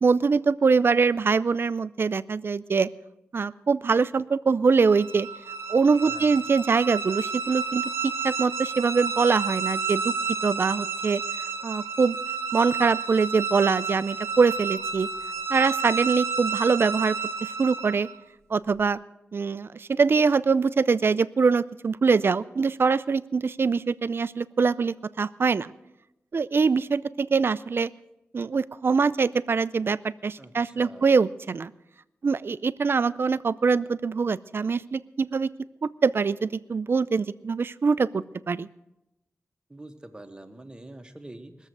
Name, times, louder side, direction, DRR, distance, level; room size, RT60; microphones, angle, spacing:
voice 1, 0.0-2.9 3.3-5.3 5.7-10.1 10.4-11.2 11.6-12.2 12.5-15.1 15.5-17.2 17.4-18.1 18.5-19.0 19.3-25.7 26.3-27.9 28.3-31.7 32.2-35.5 35.8-38.7, right 5 dB, 55° right, 16 dB, 0.5 m, -23 dB
sound 1, 4.8-18.2, right 5 dB, 70° right, 0.9 m, -31 dB
voice 2, 6.1-6.4 30.4-31.1 39.7-41.7, right 1 dB, 20° right, 6 dB, 1.4 m, -45 dB
20.5 x 7.3 x 7.9 m, 0.90 s
wide cardioid pair, 75°, 5 cm